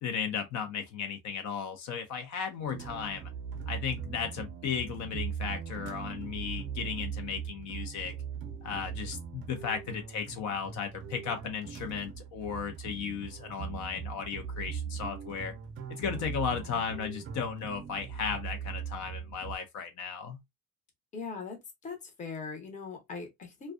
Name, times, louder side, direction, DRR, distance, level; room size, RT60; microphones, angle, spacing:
voice 1, 0.0-3.3 3.7-8.1 8.6-15.5 15.9-20.4, left 7 dB, 65° left, 0.6 m, -35 dB
sound 1, 2.6-19.6, right 7 dB, 40° right, 0.5 m, -40 dB
voice 2, 21.1-21.6 21.8-23.7, left 5 dB, 25° left, 0.7 m, -40 dB
2.5 x 2.2 x 2.3 m
cardioid pair, 175°, 31 cm